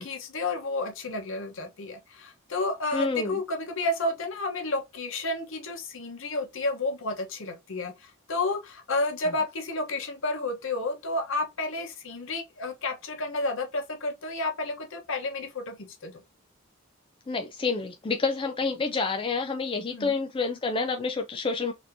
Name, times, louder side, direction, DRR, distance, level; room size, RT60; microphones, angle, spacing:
voice 1, 0.0-16.2 19.9-20.1, left 2 dB, 65° left, 1.0 m, -31 dB
voice 2, 2.9-3.4 17.3-21.7, left 4 dB, 25° left, 0.4 m, -28 dB
4.2 x 2.8 x 2.7 m
head